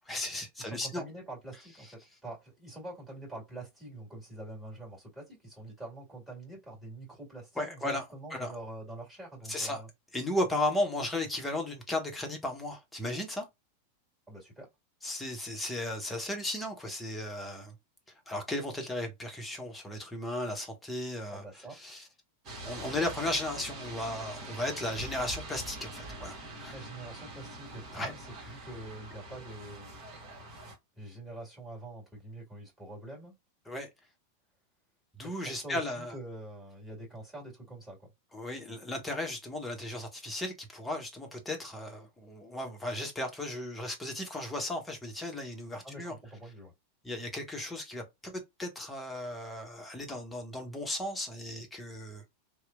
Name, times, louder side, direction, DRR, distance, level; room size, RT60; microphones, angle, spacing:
voice 1, 0.1-1.0 7.6-8.0 8.3-8.5 9.5-9.8 10.1-13.4 15.0-17.7 18.3-22.1 22.6-26.8 27.9-28.1 28.4-28.5 33.7-33.9 35.2-36.1 38.3-46.1 47.0-48.3 48.6-52.2, left 1 dB, 10° left, 0.9 m, -35 dB
voice 2, 0.6-9.9 14.3-14.7 21.3-21.8 26.7-30.0 31.0-33.3 35.2-38.0 45.8-46.7, right 2 dB, 10° right, 1.9 m, -45 dB
sound 1, 22.4-30.7, right 2 dB, 35° right, 1.3 m, -44 dB
2.9 x 2.1 x 2.4 m
figure-of-eight pair, 90°, 0 cm